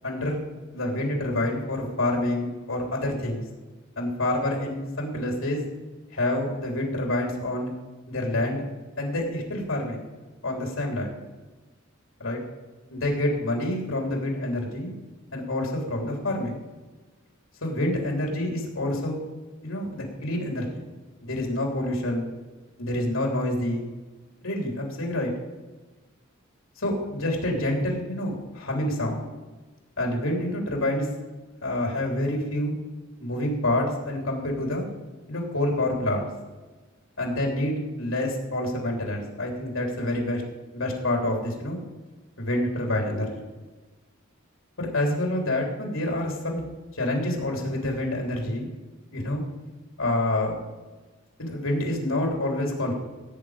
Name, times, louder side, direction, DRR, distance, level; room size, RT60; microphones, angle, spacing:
voice 1, 0.0-0.4 0.7-3.4 3.9-5.6 6.1-7.7 8.1-8.6 9.0-10.0 10.4-11.1 12.2-12.4 12.9-14.9 15.3-16.5 17.6-19.2 19.6-20.8 21.2-22.3 22.8-23.9 24.4-25.3 26.8-29.2 30.0-31.1 31.6-32.7 33.2-34.8 35.3-36.3 37.2-40.4 40.7-41.8 42.4-43.3 44.8-46.6 46.9-48.7 49.1-49.4 50.0-50.7 51.4-52.9, left 1 dB, 90° left, 0 dB, 3.4 m, -27 dB
17.5 x 8.5 x 5.0 m, 1.2 s
head